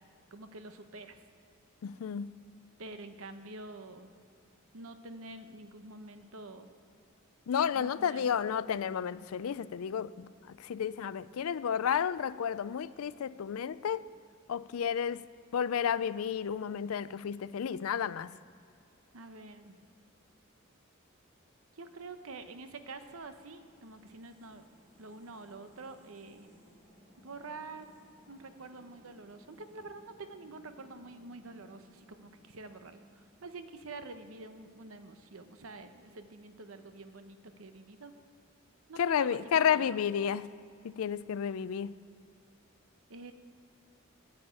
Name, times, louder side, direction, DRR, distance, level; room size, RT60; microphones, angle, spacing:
voice 1, 0.3-1.2 2.8-4.1 4.7-6.7 7.7-8.2 19.1-19.8 21.7-24.7 25.0-26.5 27.2-28.0 28.3-38.1 38.9-39.9 43.1-43.3, right 3 dB, 75° right, 9 dB, 0.9 m, -47 dB
voice 2, 1.8-2.3 7.5-14.0 14.5-15.2 15.5-18.4 39.0-40.5 40.8-41.9, left 8 dB, 85° left, 16 dB, 0.4 m, -31 dB
sound 1, 23.0-34.0, equal, 40° right, 2.8 m, -62 dB
9.6 x 8.5 x 8.8 m, 2.5 s
head